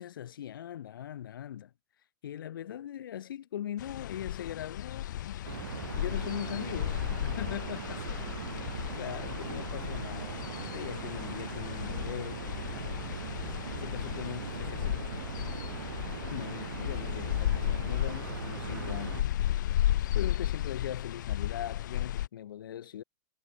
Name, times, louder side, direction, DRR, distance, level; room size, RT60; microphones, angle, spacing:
voice 1, 0.0-1.7 2.2-5.4 6.0-8.0 9.0-12.5 13.8-15.0 16.3-23.0, left 10 dB, 85° left, 0.9 m, -40 dB
sound 1, 3.8-22.3, left 13 dB, 60° left, 0.5 m, -34 dB
sound 2, 5.5-19.2, right 10 dB, 85° right, 1.4 m, -40 dB
voice 2, 7.9-9.0 13.4-15.4, left 11 dB, 15° left, 4.6 m, -61 dB
supercardioid pair, 175°, 11 cm